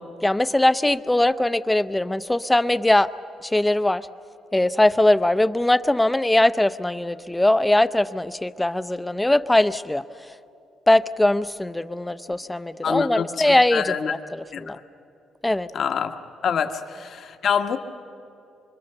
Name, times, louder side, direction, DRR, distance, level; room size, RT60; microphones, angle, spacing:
voice 1, 0.2-3.1 3.4-4.1 4.5-10.0 10.9-14.8 15.4-15.7, left 1 dB, 10° left, 13 dB, 0.6 m, -21 dB
voice 2, 12.8-14.2 14.5-14.6 15.7-16.1 16.4-17.8, left 7 dB, 60° left, 7 dB, 1.3 m, -26 dB
26.0 x 24.5 x 6.8 m, 2.6 s
cardioid pair, 90°, 0 cm